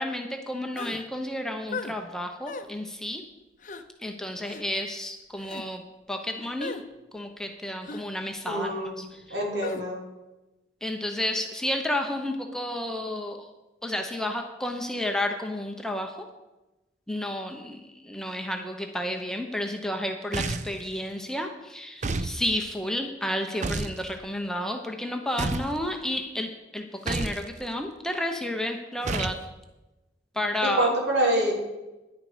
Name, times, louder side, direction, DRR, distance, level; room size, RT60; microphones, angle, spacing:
voice 1, 0.0-3.2 4.0-5.8 6.1-6.8 7.1-9.1 10.8-13.5 13.8-16.3 17.1-29.4 30.4-30.9, left 1 dB, 5° left, 3 dB, 0.8 m, -31 dB
sound 1, 0.7-1.0 1.7-2.0 2.4-2.7 3.6-3.8 4.4-4.6 5.4-5.7 6.6-6.8 7.8-8.1 9.6-9.8, left 3 dB, 45° left, 0.7 m, -36 dB
voice 2, 8.5-9.0 9.3-10.0 30.6-31.5, right 1 dB, 75° right, -1 dB, 3.1 m, -26 dB
sound 2, 20.3-20.8 22.0-22.4 23.6-24.0 25.4-25.8 27.1-27.4 29.0-29.4, right 3 dB, 40° right, 0.5 m, -29 dB
10.5 x 9.8 x 5.0 m, 1.0 s
head